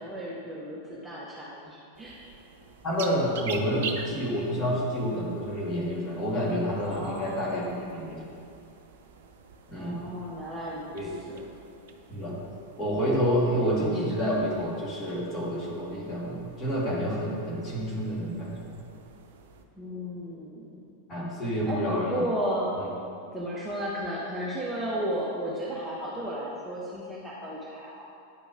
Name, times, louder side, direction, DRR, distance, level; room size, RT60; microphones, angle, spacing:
voice 1, 0.0-2.2 6.8-8.0 9.8-11.5 19.8-20.8 21.6-22.8 23.3-28.1, equal, 10° right, -6 dB, 1.0 m, -34 dB
sound 1, 1.9-19.6, right 5 dB, 55° right, 0.6 m, -46 dB
voice 2, 2.8-8.2 9.7-10.0 10.9-11.1 12.1-12.4 12.8-18.7 21.1-22.2, equal, 25° left, -5 dB, 2.2 m, -29 dB
9.4 x 5.1 x 4.9 m, 2.5 s
figure-of-eight pair, 90°, 0 cm